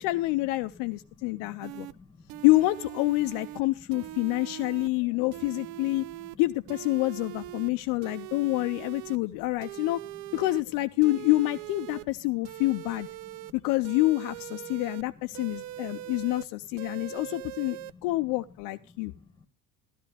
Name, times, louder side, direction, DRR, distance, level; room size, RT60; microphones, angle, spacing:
voice 1, 0.0-1.9 2.4-6.0 6.4-10.0 10.3-13.1 13.5-19.1, left 19 dB, 60° left, 10 dB, 0.6 m, -27 dB
voice 2, 1.2-2.5 4.2-4.3 5.2-5.3 6.2-6.3 7.7-8.0 8.3-8.6 13.4-13.5 14.6-14.8 15.5-16.1 17.0-17.2 17.9-18.1 18.9-19.5, left 4 dB, 15° left, 9 dB, 1.5 m, -54 dB
sound 1, 1.6-1.9 2.3-3.6 3.9-4.9 5.3-6.4 6.7-7.7 8.0-9.2 9.6-10.6 11.0-12.1 12.4-13.5 13.8-15.0 15.3-16.5 16.8-17.9, right 16 dB, 70° right, 0.6 m, -41 dB
13.5 x 12.5 x 3.4 m, 0.30 s
cardioid pair, 155°, 36 cm